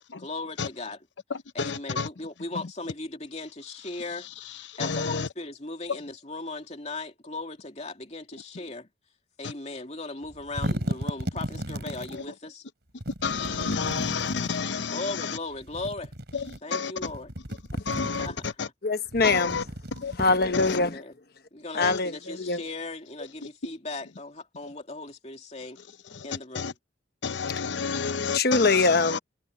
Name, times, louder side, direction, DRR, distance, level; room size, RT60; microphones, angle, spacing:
voice 1, 0.2-1.1 1.5-4.3 4.8-8.9 9.4-12.6 14.9-16.1 16.6-17.3 18.2-18.6 20.6-21.1 21.5-25.8 26.2-26.7, left 2 dB, 35° left, 2.8 m, -37 dB
voice 2, 1.6-2.1 4.8-5.3 12.1-12.2 13.2-15.4 16.3-16.4 16.7-16.9 17.9-18.3 18.6-18.7 19.2-19.6 20.0-20.2 20.5-20.8 21.8-22.0 26.2-26.3 26.5-26.7 27.2-29.2, left 5 dB, 70° left, 0.7 m, -30 dB
sound 1, 10.2-12.2 13.0-14.6 15.5-16.6 17.0-18.5 19.1-20.9, equal, 55° right, 7.4 m, -35 dB
voice 3, 18.8-19.7 20.2-21.0 21.7-22.6 28.3-29.2, left 3 dB, 50° left, 1.1 m, -23 dB
head